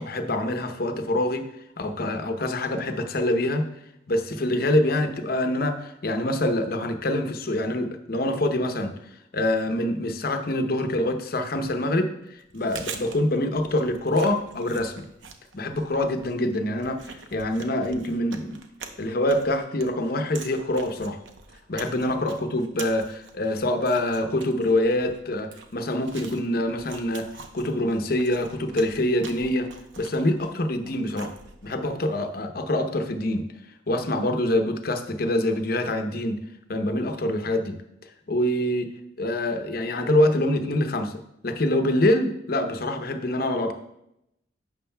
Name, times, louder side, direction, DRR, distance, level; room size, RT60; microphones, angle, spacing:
voice 1, 0.0-1.4 1.8-3.7 4.1-8.9 9.3-15.1 15.5-18.6 19.0-21.2 21.7-27.3 27.5-29.7 30.0-31.3 31.6-33.4 33.9-36.4 36.7-37.8 38.3-38.9 39.2-41.2 41.4-43.7, left 1 dB, 50° left, 6 dB, 0.8 m, -25 dB
Chewing mastication, 12.4-31.9, right 5 dB, 85° right, 0.8 m, -45 dB
11.0 x 7.5 x 2.2 m, 0.82 s
head